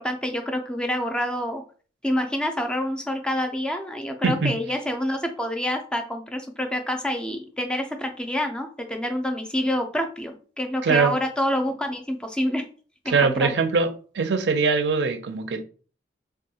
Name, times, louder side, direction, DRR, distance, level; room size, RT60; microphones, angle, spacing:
voice 1, 0.0-1.6 2.0-12.6 13.1-13.5, equal, 5° left, 0.4 m, -27 dB
voice 2, 4.2-4.6 10.8-11.2 13.1-13.9 14.1-15.6, right 4 dB, 75° right, 0.4 m, -22 dB
3.5 x 2.3 x 2.7 m
head